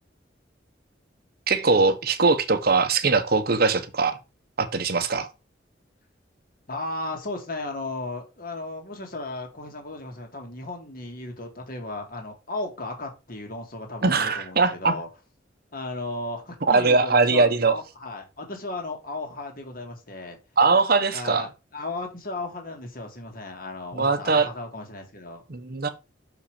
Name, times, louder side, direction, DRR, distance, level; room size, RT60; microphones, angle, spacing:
voice 1, 1.5-4.2 4.6-5.3 14.0-15.0 16.7-17.8 20.6-21.5 23.9-24.5 25.5-25.9, right 4 dB, 55° right, 1.0 m, -21 dB
voice 2, 6.7-15.1 15.7-20.4 21.1-25.4, left 2 dB, 50° left, 2.2 m, -35 dB
6.4 x 5.1 x 4.9 m
head